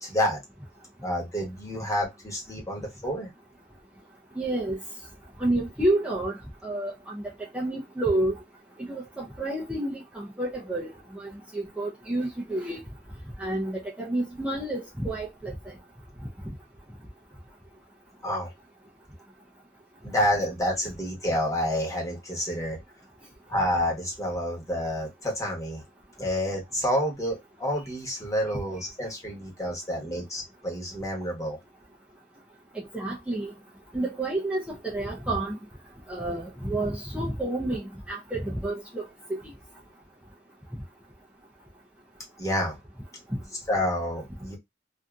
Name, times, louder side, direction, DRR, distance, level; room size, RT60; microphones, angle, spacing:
voice 1, 0.0-0.4 1.0-3.3 18.2-18.5 20.0-22.8 23.5-25.8 26.2-31.6 42.4-42.8 43.7-44.6, equal, 20° left, 1.0 m, -29 dB
voice 2, 4.4-4.8 5.4-6.4 6.6-7.2 7.5-8.3 8.9-12.8 13.4-15.5 32.7-33.5 33.9-35.6 36.1-39.0, right 1 dB, 5° right, 0.5 m, -29 dB
2.7 x 2.5 x 2.2 m
head